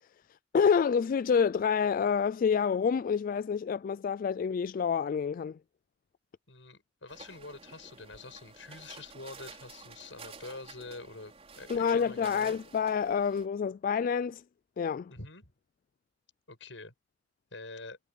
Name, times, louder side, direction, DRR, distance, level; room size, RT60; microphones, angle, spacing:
voice 1, 0.5-5.6 11.7-14.4 14.8-15.1, left 6 dB, 50° left, 0.3 m, -28 dB
voice 2, 6.5-12.6 15.1-15.5 16.5-16.9 17.5-18.0, left 3 dB, 85° left, 7.0 m, -46 dB
sound 1, 7.1-13.5, right 4 dB, 35° right, 4.5 m, -51 dB
head